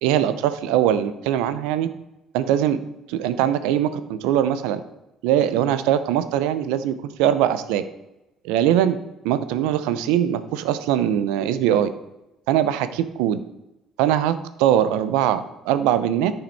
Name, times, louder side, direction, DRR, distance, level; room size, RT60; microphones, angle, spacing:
voice 1, 0.0-1.9 2.3-2.8 3.1-4.8 5.2-7.8 8.4-9.0 9.2-11.9 12.5-13.4 14.0-16.3, right 10 dB, 85° right, 12 dB, 0.6 m, -21 dB
10.0 x 5.8 x 4.1 m, 0.95 s
supercardioid pair, 75°, 0 cm